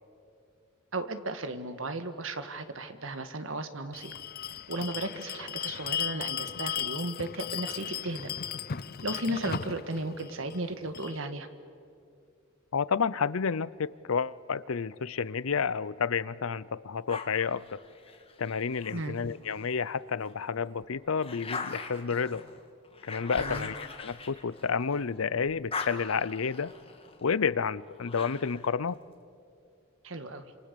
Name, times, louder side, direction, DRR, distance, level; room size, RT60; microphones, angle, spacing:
voice 1, 0.9-4.1 4.7-8.3 9.0-11.5 18.9-19.2 23.4-23.7 30.0-30.4, right 2 dB, 70° right, 1.7 m, -35 dB
Bell, 3.9-11.2, left 9 dB, 45° left, 0.6 m, -36 dB
voice 2, 12.7-17.8 18.4-22.4 23.0-26.7 27.2-29.0, left 6 dB, 90° left, 0.6 m, -30 dB
sound 1, 17.1-19.8 20.3-25.1 25.4-28.7, left 4 dB, 30° left, 2.0 m, -42 dB
28.0 x 27.0 x 6.9 m
head